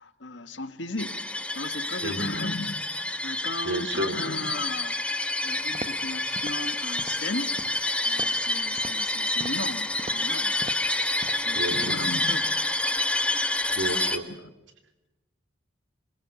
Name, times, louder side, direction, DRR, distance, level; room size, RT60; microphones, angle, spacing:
voice 1, 0.0-2.8 3.2-5.0 5.4-7.6 8.0-10.6 11.3-12.6 14.3-14.5, left 2 dB, 70° left, 10 dB, 1.7 m, -36 dB
sound 1, 1.0-14.2, left 2 dB, 5° left, 1.2 m, -28 dB
voice 2, 2.0-2.4 3.6-4.2 11.5-12.0 13.7-14.3, right 2 dB, 80° right, 8 dB, 3.1 m, -31 dB
sound 2, 5.7-6.1 6.3-6.6 7.0-7.3 7.6-7.9 8.2-8.5 8.8-9.1 9.4-9.7 10.0-10.3 10.6-10.9 11.2-11.5 11.8-12.1 12.4-12.5, right 2 dB, 30° right, 1.2 m, -41 dB
26.5 x 21.5 x 7.1 m, 0.99 s
head